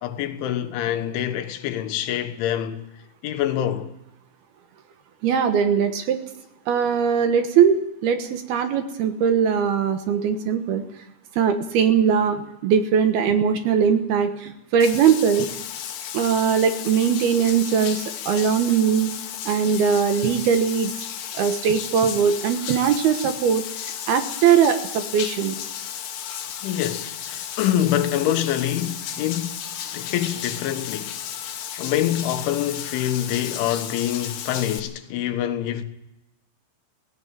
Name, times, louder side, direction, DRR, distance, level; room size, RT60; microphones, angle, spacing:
voice 1, 0.0-2.9 3.2-3.9 26.6-29.6 29.9-31.2 31.8-35.8, left 11 dB, 85° left, 3.7 m, -25 dB
voice 2, 5.2-6.2 6.7-10.9 11.4-15.5 16.1-19.1 19.5-20.9 21.3-23.7 24.1-25.6, right 7 dB, 70° right, 2.8 m, -20 dB
Bathtub (filling or washing), 14.8-34.8, left 9 dB, 65° left, 3.2 m, -34 dB
17.5 x 17.5 x 8.8 m
omnidirectional pair, 5.3 m